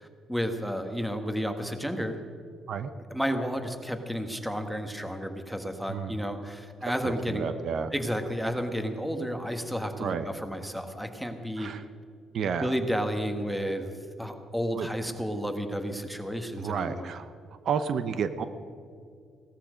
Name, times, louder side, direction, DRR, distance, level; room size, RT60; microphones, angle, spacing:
voice 1, 0.0-2.2 3.1-7.5 7.9-11.7 12.4-13.9 14.2-17.1, equal, ahead, 6 dB, 1.6 m, -32 dB
voice 2, 7.0-7.9 10.0-10.2 11.6-11.8 12.3-12.7 14.7-14.9 16.6-17.3 17.6-18.5, right 7 dB, 65° right, 10 dB, 0.8 m, -31 dB
17.5 x 13.0 x 5.2 m, 2.3 s
cardioid pair, 90°, 0 cm